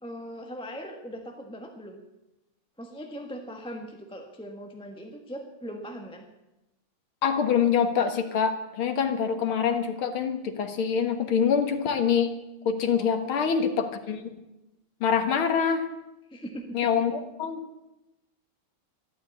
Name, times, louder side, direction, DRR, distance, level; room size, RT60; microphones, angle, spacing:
voice 1, 0.0-2.0 2.8-6.3 13.0-13.7 16.3-17.0, equal, 5° left, 2 dB, 1.0 m, -40 dB
voice 2, 7.2-12.3 12.7-14.2 15.0-15.8 16.7-17.6, left 7 dB, 70° left, 7 dB, 2.2 m, -25 dB
12.5 x 12.0 x 8.4 m, 0.97 s
omnidirectional pair, 2.4 m